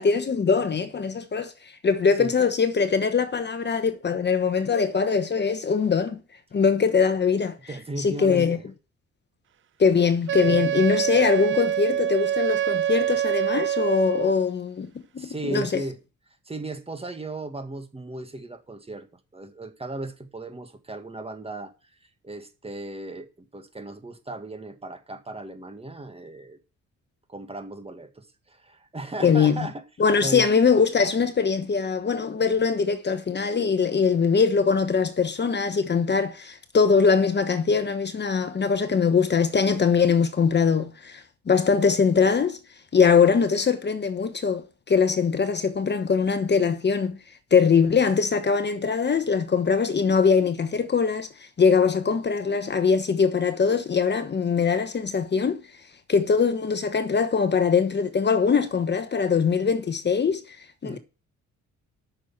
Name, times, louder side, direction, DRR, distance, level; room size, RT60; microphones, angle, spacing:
voice 1, 0.0-1.5 1.8-6.2 6.5-7.6 8.0-8.6 9.8-14.9 15.1-15.8 29.2-29.6 30.0-42.6 42.9-47.2 47.5-55.6 56.1-60.6 60.8-61.0, left 5 dB, 35° left, 1.1 m, -22 dB
voice 2, 7.7-8.7 15.2-16.0 16.5-19.1 19.3-21.7 22.0-26.6 27.3-29.8 30.2-30.5 60.8-61.0, right 2 dB, 20° right, 1.9 m, -36 dB
Wind instrument woodwind instrument, 10.3-14.4, right 10 dB, 45° right, 0.5 m, -25 dB
8.8 x 6.6 x 7.4 m
cardioid pair, 90°, 30 cm